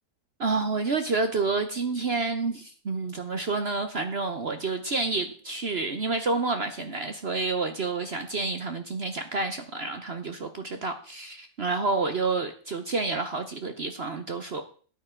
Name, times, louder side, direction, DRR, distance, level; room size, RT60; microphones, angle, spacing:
voice 1, 0.4-14.6, right 3 dB, 45° right, 7 dB, 0.9 m, -29 dB
13.0 x 8.9 x 3.8 m, 0.42 s
omnidirectional pair, 1.8 m